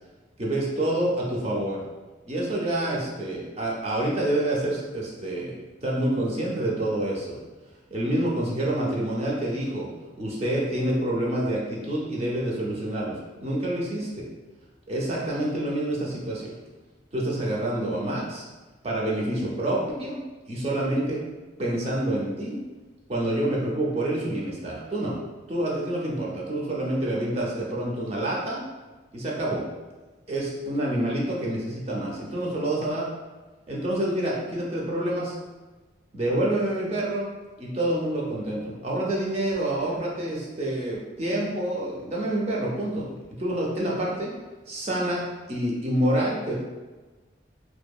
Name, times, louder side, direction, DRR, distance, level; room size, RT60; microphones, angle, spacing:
voice 1, 0.4-1.8 2.3-5.5 5.8-7.4 7.9-9.9 10.2-14.2 14.9-16.6 17.1-18.5 18.8-20.2 20.5-21.2 21.6-22.6 23.1-25.2 25.5-28.6 29.1-29.6 30.3-33.1 33.7-35.3 36.1-37.3 37.6-44.3 44.7-45.2 45.5-46.6, right 1 dB, 35° right, -4 dB, 0.4 m, -27 dB
2.7 x 2.2 x 2.3 m, 1.2 s
head